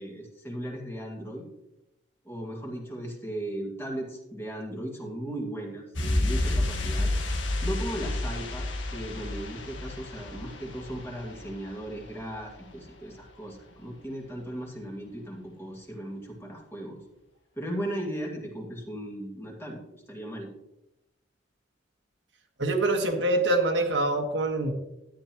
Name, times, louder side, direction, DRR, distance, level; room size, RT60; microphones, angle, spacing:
voice 1, 0.0-1.5 2.2-7.1 7.6-8.7 8.9-17.0 17.6-20.5, right 1 dB, 15° left, -1 dB, 2.2 m, -37 dB
sound 1, 5.9-12.5 12.7-12.8, left 1 dB, 85° left, 1.6 m, -30 dB
voice 2, 22.6-24.7, right 2 dB, 70° right, 2 dB, 1.6 m, -25 dB
13.0 x 10.0 x 3.0 m, 0.91 s
head